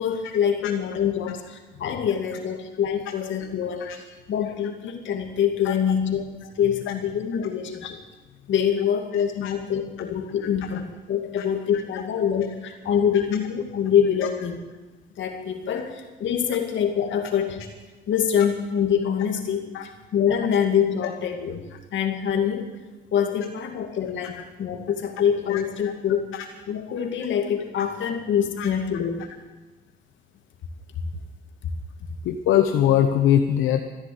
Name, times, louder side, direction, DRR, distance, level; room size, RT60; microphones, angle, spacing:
voice 1, 0.0-3.9 4.3-6.3 6.6-8.0 8.5-14.6 15.2-17.6 18.1-19.7 20.1-21.6 21.9-22.7 23.1-26.3 26.7-29.3, left 8 dB, 70° left, 3 dB, 2.3 m, -25 dB
voice 2, 9.1-9.5 11.4-11.5 11.7-11.8 13.1-13.2 19.7-19.9 24.4-24.5 25.5-25.9 26.3-26.4 28.6-28.7 32.2-33.8, left 10 dB, 85° left, 6 dB, 0.9 m, -23 dB
14.0 x 10.5 x 8.7 m, 1.2 s
cardioid pair, 90°, 20 cm